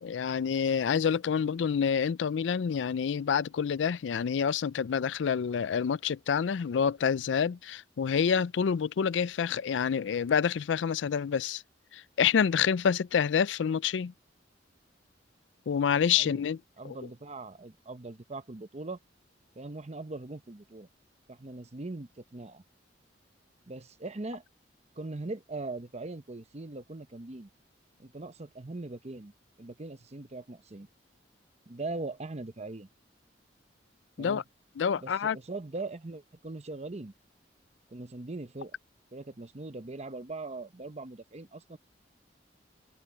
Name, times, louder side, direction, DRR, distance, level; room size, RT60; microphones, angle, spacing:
voice 1, 0.0-11.6 11.9-14.1 15.7-16.6 16.8-17.0 34.2-34.4 34.8-35.4, left 7 dB, 90° left, 0.4 m, -27 dB
voice 2, 16.8-19.0 19.5-20.9 21.3-22.6 23.7-24.4 25.0-27.5 28.0-29.3 29.6-30.9 31.7-32.9 34.2-34.4 35.0-37.1 37.9-38.8 39.1-41.8, right 2 dB, 40° right, 0.9 m, -40 dB
head